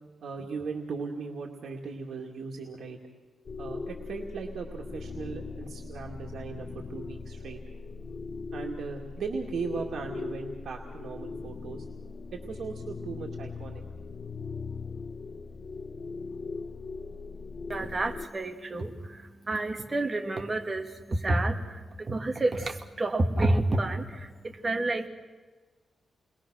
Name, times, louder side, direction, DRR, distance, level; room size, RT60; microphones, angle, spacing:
voice 1, 0.2-3.0 3.6-7.6 8.5-11.8 12.3-13.8, right 5 dB, 70° right, 0 dB, 2.3 m, -38 dB
sound 1, 3.5-18.3, left 4 dB, 40° left, 0.9 m, -39 dB
voice 2, 17.7-25.1, right 2 dB, 25° right, 4 dB, 2.1 m, -29 dB
29.5 x 21.5 x 6.4 m, 1.4 s
wide cardioid pair, 140°, 0 cm